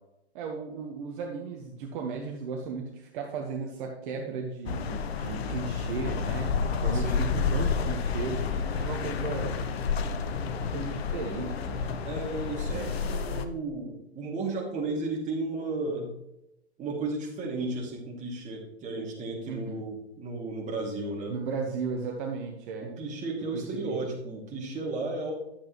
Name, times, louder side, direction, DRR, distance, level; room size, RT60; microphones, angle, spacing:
voice 1, 0.3-6.5 6.8-9.5 10.6-11.8 12.7-13.0 19.4-19.8 21.3-22.9 23.5-24.0, right 5 dB, 50° right, 1 dB, 1.4 m, -35 dB
sound 1, 4.7-13.5, left 5 dB, 65° left, 1.0 m, -30 dB
voice 2, 6.9-7.3 12.1-16.1 16.8-21.4 22.8-25.3, right 3 dB, 20° right, -1 dB, 2.5 m, -34 dB
10.5 x 7.3 x 3.1 m, 0.85 s
hypercardioid pair, 115°, 33 cm